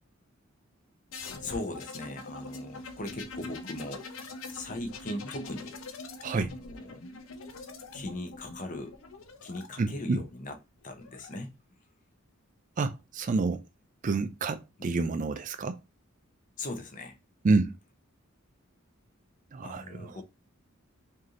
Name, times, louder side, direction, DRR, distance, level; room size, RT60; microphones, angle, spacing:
sound 1, 1.1-9.7 10.8-11.4, left 2 dB, 70° left, 0.7 m, -43 dB
voice 1, 1.4-5.8 6.3-7.0 7.9-9.0 9.4-10.6 10.8-11.5 14.8-15.0 16.6-17.2 19.6-20.2, left 2 dB, 40° left, 0.8 m, -39 dB
voice 2, 9.8-10.2 12.8-13.6 14.0-15.8 17.4-17.7 19.5-20.0, right 3 dB, 40° right, 0.4 m, -28 dB
3.3 x 2.7 x 3.7 m
head